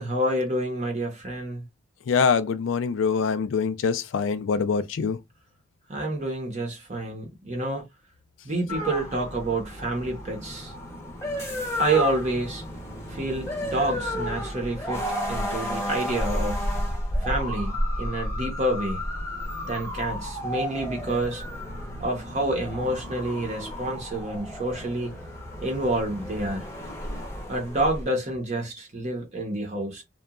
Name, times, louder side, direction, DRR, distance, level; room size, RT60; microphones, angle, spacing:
voice 1, 0.0-1.7 5.9-7.8 8.4-10.7 11.8-12.6 13.1-16.7 17.2-19.0 19.6-21.4 22.0-25.1 25.6-26.7 27.5-30.0, right 1 dB, 35° right, 0.8 m, -28 dB
voice 2, 2.1-5.2, left 5 dB, 75° left, 0.4 m, -24 dB
sound 1, 8.7-28.0, left 1 dB, 15° left, 0.8 m, -32 dB
2.8 x 2.2 x 2.3 m
head